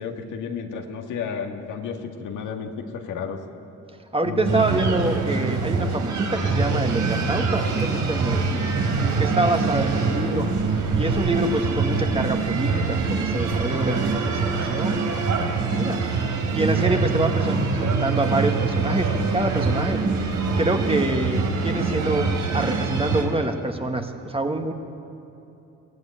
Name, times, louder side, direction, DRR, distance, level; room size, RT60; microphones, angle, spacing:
voice 1, 0.0-3.4 4.2-4.6, left 6 dB, 80° left, 3 dB, 2.0 m, -32 dB
voice 2, 4.1-8.6 9.2-10.5 10.9-16.0 16.5-17.6 18.0-20.0 20.6-24.7, right 2 dB, 20° right, 5 dB, 1.8 m, -26 dB
sound 1, 4.4-23.2, right 4 dB, 70° right, 3.3 m, -24 dB
23.0 x 16.0 x 8.8 m, 2.8 s
cardioid pair, 90°, 30 cm